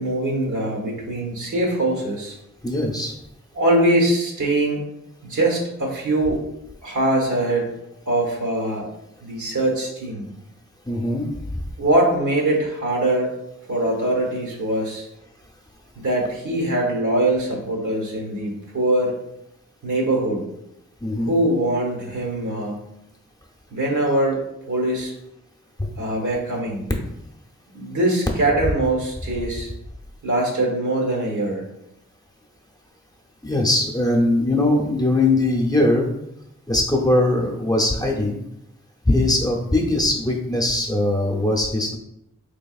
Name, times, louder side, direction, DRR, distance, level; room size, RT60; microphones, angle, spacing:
voice 1, 0.0-2.4 3.5-4.8 5.2-6.4 6.8-7.7 8.1-8.9 9.2-10.3 11.8-13.3 13.7-15.0 15.9-19.1 19.8-20.5 21.2-22.9 23.7-24.4 24.7-25.1 26.0-26.8 27.7-29.7 30.2-31.6, right 1 dB, 75° right, -1 dB, 1.1 m, -22 dB
voice 2, 2.6-3.1 10.9-11.3 21.0-21.3 25.8-25.9 33.4-36.1 36.7-38.4 39.1-42.0, left 2 dB, 10° left, -1 dB, 0.7 m, -20 dB
3.7 x 3.4 x 2.4 m, 0.83 s
wide cardioid pair, 55°, 30 cm